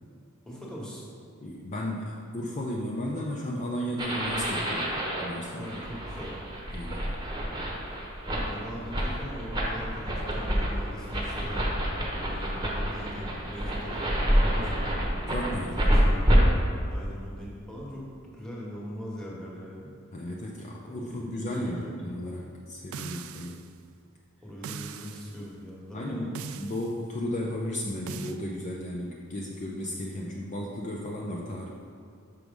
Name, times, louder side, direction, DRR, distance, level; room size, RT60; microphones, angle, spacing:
voice 1, 0.4-1.0 5.5-6.3 8.3-11.7 12.3-15.0 15.8-16.3 16.9-19.9 20.8-21.5 21.7-21.9 24.4-26.3, equal, 5° left, -5 dB, 1.3 m, -41 dB
voice 2, 1.4-5.8 6.7-7.1 15.3-15.9 20.1-23.6 25.9-31.7, left 1 dB, 35° left, -2 dB, 0.5 m, -34 dB
sound 1, 4.0-16.4, equal, 20° right, 1.0 m, -28 dB
sound 2, 22.9-23.7 24.6-25.3 26.4-26.9 28.1-28.4, right 6 dB, 70° right, 0.3 m, -40 dB
6.1 x 4.7 x 5.3 m, 2.3 s
head